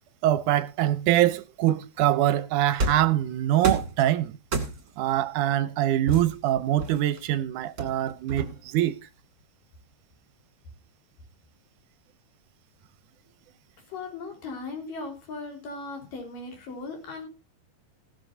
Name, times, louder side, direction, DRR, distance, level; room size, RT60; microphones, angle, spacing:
voice 1, 0.2-4.4 5.0-9.0, right 13 dB, 75° right, 2.1 m, -24 dB
sound 1, 2.8-3.1 3.6-4.0 4.5-5.0 6.1-7.2 7.8-8.8, right 3 dB, 30° right, 2.3 m, -30 dB
voice 2, 13.9-17.3, left 3 dB, 85° left, 5.7 m, -37 dB
16.0 x 12.5 x 2.7 m
omnidirectional pair, 3.8 m